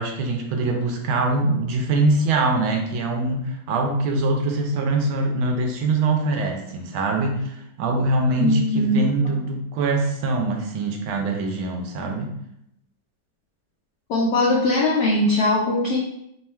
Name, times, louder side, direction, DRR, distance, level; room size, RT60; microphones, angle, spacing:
voice 1, 0.0-12.3, right 2 dB, 80° right, 2 dB, 1.5 m, -23 dB
voice 2, 8.4-9.0 14.1-16.0, left 2 dB, 80° left, -3 dB, 0.8 m, -20 dB
3.6 x 2.3 x 4.2 m, 0.76 s
omnidirectional pair, 2.3 m